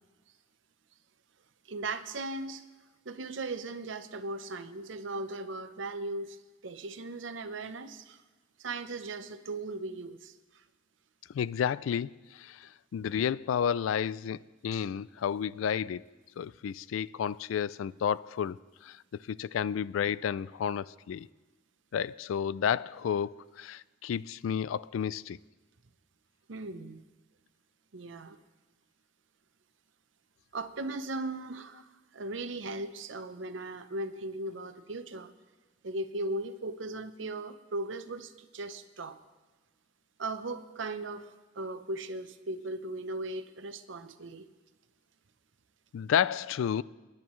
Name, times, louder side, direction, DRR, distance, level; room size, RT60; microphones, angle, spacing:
voice 1, 1.7-2.6 3.1-8.2 8.6-10.6 26.5-27.0 27.9-28.4 30.5-31.9 32.1-35.3 35.8-39.2 40.2-44.5, right 2 dB, 70° right, 0.7 m, -38 dB
voice 2, 11.3-16.1 16.4-19.0 19.3-21.3 21.9-25.4 45.9-46.8, left 8 dB, 85° left, 0.3 m, -31 dB
27.5 x 10.5 x 3.1 m
head